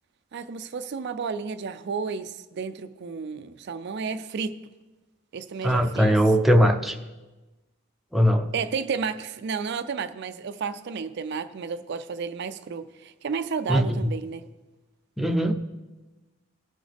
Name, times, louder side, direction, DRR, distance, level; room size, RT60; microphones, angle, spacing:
voice 1, 0.3-4.5 5.3-6.2 8.5-14.5, right 5 dB, 55° right, 10 dB, 0.4 m, -32 dB
voice 2, 5.6-7.0 8.1-8.5 13.7-14.1 15.2-15.6, equal, ahead, 4 dB, 0.5 m, -20 dB
18.5 x 6.2 x 3.4 m, 1.1 s
head